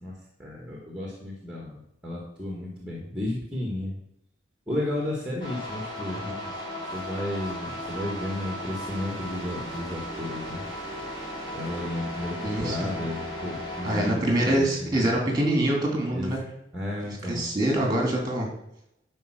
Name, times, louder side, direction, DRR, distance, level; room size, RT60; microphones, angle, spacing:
voice 1, 0.0-4.0 4.7-6.3 6.9-10.6 11.5-15.1 16.1-16.3 16.7-17.4, left 1 dB, 5° right, -2 dB, 1.6 m, -33 dB
sound 1, 5.4-14.1, equal, 25° left, 2.7 m, -36 dB
voice 2, 12.4-12.9 13.8-16.4 17.3-18.5, right 1 dB, 20° right, 0 dB, 2.7 m, -25 dB
11.0 x 4.5 x 6.3 m, 0.82 s
head